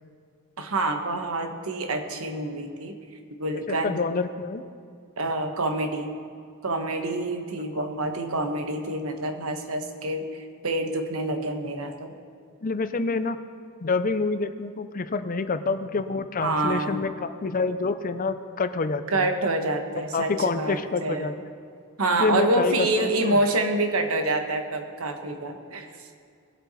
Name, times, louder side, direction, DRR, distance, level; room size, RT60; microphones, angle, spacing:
voice 1, 0.6-3.0 3.4-4.0 5.2-6.1 6.6-12.1 16.4-17.0 19.1-21.3 22.0-25.9, right 2 dB, 75° right, 5 dB, 1.2 m, -27 dB
voice 2, 3.7-4.6 7.8-8.2 12.6-13.4 13.8-19.3 20.1-21.3 22.2-23.4, left 4 dB, 40° left, 11 dB, 0.5 m, -27 dB
20.5 x 8.0 x 4.1 m, 2.3 s
head